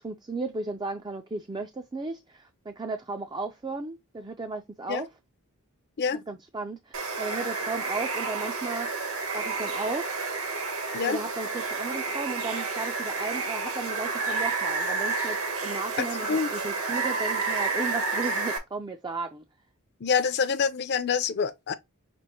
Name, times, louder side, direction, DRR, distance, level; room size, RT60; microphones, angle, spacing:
voice 1, 0.0-5.1 6.1-10.1 11.0-19.4, right 3 dB, 20° right, 0.4 m, -35 dB
Water, 6.9-18.6, right 4 dB, 70° right, 1.2 m, -30 dB
voice 2, 16.0-16.5 20.0-21.7, left 6 dB, 50° left, 0.5 m, -26 dB
6.0 x 2.5 x 2.8 m
head